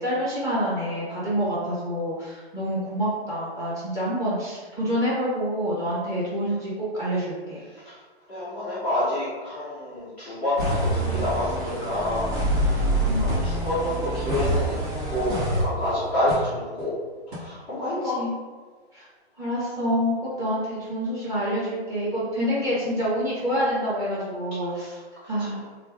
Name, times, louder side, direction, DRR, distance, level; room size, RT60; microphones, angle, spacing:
voice 1, 0.0-7.6 13.0-13.3 18.0-18.3 18.9-19.1 19.4-24.9 25.3-25.6, equal, 10° right, -9 dB, 1.2 m, -27 dB
voice 2, 8.3-12.3 12.9-13.0 13.2-14.7 15.1-16.9 17.4-18.2 24.8-25.5, left 1 dB, 5° left, -16 dB, 0.4 m, -28 dB
sound 1, 10.6-16.4 16.8-16.9 17.3-17.4, right 1 dB, 50° right, 1.2 m, -26 dB
3.1 x 2.4 x 3.5 m, 1.4 s
hypercardioid pair, 150°, 32 cm